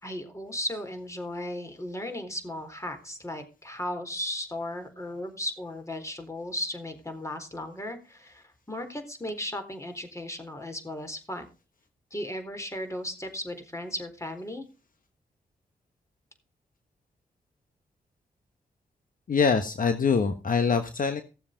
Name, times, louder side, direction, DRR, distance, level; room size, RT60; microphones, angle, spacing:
voice 1, 0.0-11.5 12.1-14.7, left 1 dB, 15° left, 6 dB, 4.0 m, -36 dB
voice 2, 19.3-21.2, left 5 dB, 55° left, 8 dB, 1.3 m, -24 dB
16.5 x 7.2 x 5.1 m, 0.33 s
supercardioid pair, 40°, 17 cm